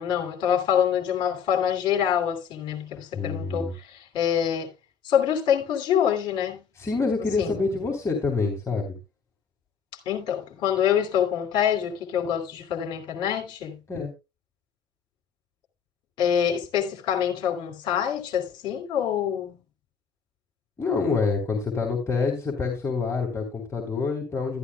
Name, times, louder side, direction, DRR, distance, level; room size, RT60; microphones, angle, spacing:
voice 1, 0.0-4.7 5.0-6.6 7.4-7.5 10.1-13.8 16.2-19.6, left 9 dB, 50° left, 2.8 m, -25 dB
voice 2, 3.1-3.7 6.8-9.0 13.9-14.1 20.8-24.6, left 4 dB, 25° left, 3.6 m, -27 dB
12.5 x 12.5 x 2.3 m
figure-of-eight pair, 60°, 11 cm